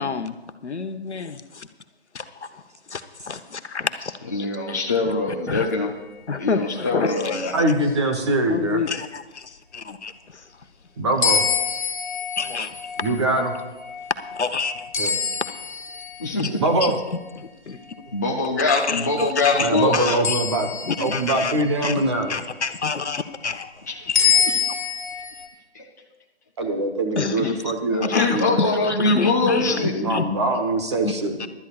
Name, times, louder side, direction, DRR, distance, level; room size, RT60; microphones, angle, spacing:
voice 1, 0.0-1.7 2.1-2.6 2.9-4.8 5.5-5.7 6.3-7.6 8.5-10.5 12.4-12.8 14.3-15.3 16.4-16.5 16.8-17.8 18.7-20.4 20.9-22.0 22.3-24.2 27.2-27.7 28.1-30.3 31.0-31.1 31.4-31.5, left 4 dB, 85° left, 9 dB, 1.1 m, -28 dB
voice 2, 4.3-5.9 6.4-7.5 16.2-16.6 18.1-20.1 23.9-24.0 24.4-24.5 25.7-25.8 27.4-27.5 27.9-29.9, left 3 dB, 15° left, -3 dB, 0.6 m, -23 dB
voice 3, 7.5-8.8 11.0-11.4 13.0-13.6 15.0-15.1 16.6-16.9 19.6-20.7 21.0-22.4 26.6-28.6 29.7-31.5, right 2 dB, 25° right, 4 dB, 1.0 m, -23 dB
sound 1, 11.2-16.7 20.2-22.3 24.1-25.5, left 7 dB, 45° left, 1.7 m, -26 dB
23.5 x 12.0 x 2.4 m, 1.1 s
figure-of-eight pair, 160°, 33 cm